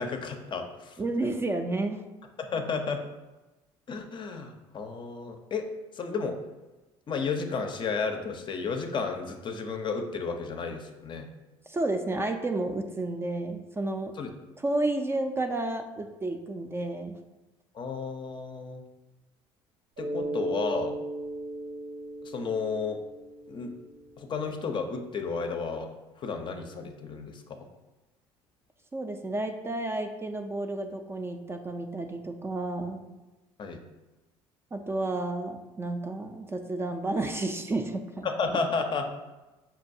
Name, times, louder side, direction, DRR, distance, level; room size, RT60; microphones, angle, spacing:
voice 1, 0.0-1.0 2.4-3.0 3.9-5.7 5.9-6.4 7.1-11.3 14.2-14.3 17.7-18.8 20.0-21.0 22.2-23.0 23.5-23.7 24.2-27.7 33.6-33.8 38.2-39.1, left 4 dB, 40° left, 5 dB, 0.5 m, -32 dB
voice 2, 1.0-2.0 11.7-14.1 14.6-17.2 28.9-33.0 34.7-38.3, right 2 dB, 20° right, 5 dB, 0.4 m, -31 dB
Mallet percussion, 20.0-24.4, right 2 dB, 75° right, 0.8 m, -37 dB
5.6 x 2.2 x 2.6 m, 1.1 s
supercardioid pair, 75°, 12 cm